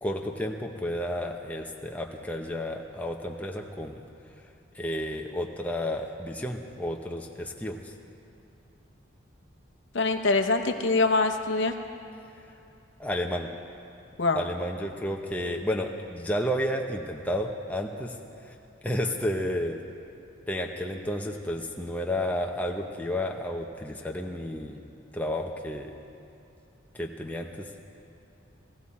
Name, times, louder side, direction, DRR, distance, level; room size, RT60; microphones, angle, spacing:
voice 1, 0.0-4.0 4.7-7.9 13.0-13.5 14.4-18.2 18.4-18.5 18.8-19.8 20.5-24.8 25.1-25.9 26.9-27.8, equal, 5° left, 1 dB, 0.7 m, -31 dB
voice 2, 9.9-11.7 14.2-14.4, left 3 dB, 60° left, 6 dB, 0.8 m, -24 dB
18.0 x 15.5 x 4.2 m, 2.8 s
head